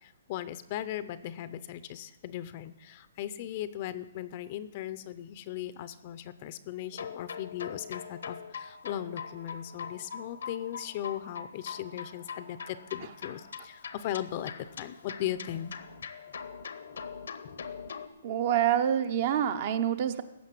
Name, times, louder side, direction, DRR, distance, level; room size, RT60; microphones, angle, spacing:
voice 1, 0.0-15.8 16.9-17.0, left 12 dB, 35° left, 14 dB, 0.6 m, -38 dB
sound 1, 6.9-18.1, left 6 dB, 75° left, 0.9 m, -42 dB
voice 2, 18.2-20.2, right 10 dB, 40° right, 11 dB, 0.8 m, -27 dB
15.5 x 6.1 x 7.5 m, 0.94 s
hypercardioid pair, 160°, 0 cm